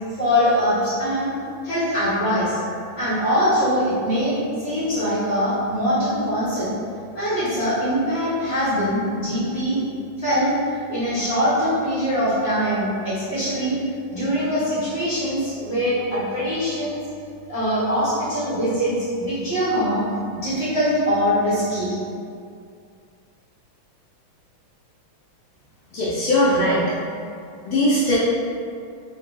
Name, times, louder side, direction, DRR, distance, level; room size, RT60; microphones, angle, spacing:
voice 1, 0.2-1.3 1.6-2.6 2.9-6.7 7.1-9.8 10.2-10.5 10.9-13.8 14.1-17.0 17.5-20.0 20.3-21.9, equal, 45° left, -11 dB, 0.9 m, -22 dB
voice 2, 25.9-26.9 27.6-28.2, left 1 dB, 75° left, -9 dB, 1.4 m, -19 dB
3.6 x 2.1 x 3.1 m, 2.3 s
omnidirectional pair, 2.3 m